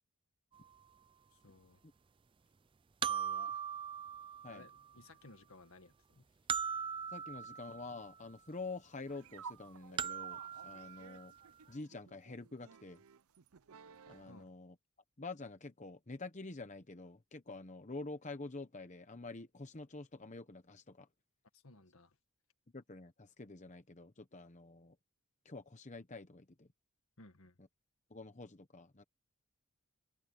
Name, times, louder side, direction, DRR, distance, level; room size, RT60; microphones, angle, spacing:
sound 1, 0.6-0.7 3.0-4.9 6.5-8.1 10.0-11.4, right 7 dB, 20° right, 0.3 m, -40 dB
voice 1, 1.3-1.8 3.0-3.7 4.5-6.3 14.3-14.5 21.5-22.2 27.2-27.6, left 2 dB, 70° left, 1.9 m, -58 dB
voice 2, 7.1-11.3 11.7-13.0 14.1-14.7 15.2-21.1 22.7-25.0 25.4-26.7 28.1-29.0, left 3 dB, 35° left, 0.9 m, -47 dB
sound 2, 9.0-14.4, right 6 dB, 80° right, 0.6 m, -55 dB
head